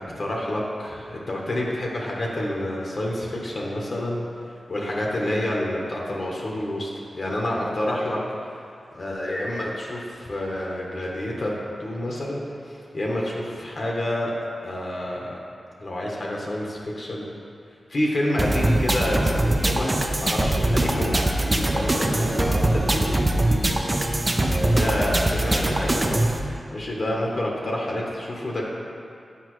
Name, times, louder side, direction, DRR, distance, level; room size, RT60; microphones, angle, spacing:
voice 1, 0.0-4.2 4.7-6.9 7.1-8.2 8.9-14.3 14.6-15.4 15.8-17.2 17.9-19.9 20.2-23.8 24.4-26.4 26.7-28.6, left 1 dB, 55° left, -3 dB, 0.9 m, -28 dB
sound 1, 18.4-26.4, right 1 dB, 25° right, 0.5 m, -22 dB
8.3 x 5.1 x 3.1 m, 2.4 s
wide cardioid pair, 80°, 0 cm